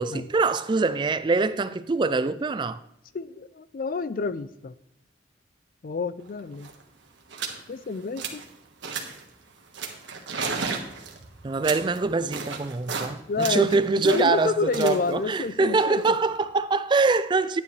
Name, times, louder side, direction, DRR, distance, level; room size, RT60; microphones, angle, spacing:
voice 1, 0.0-2.8 11.4-17.6, right 3 dB, 25° right, 0.3 m, -24 dB
voice 2, 3.1-4.7 5.8-6.7 7.7-8.4 13.3-16.2, left 4 dB, 50° left, 0.4 m, -29 dB
sound 1, 6.3-6.4 6.5-6.8 7.3-7.6 8.0-8.5 8.8-9.3 9.7-13.1 13.4-16.4, right 5 dB, 90° right, 1.4 m, -34 dB
11.0 x 9.5 x 3.2 m
head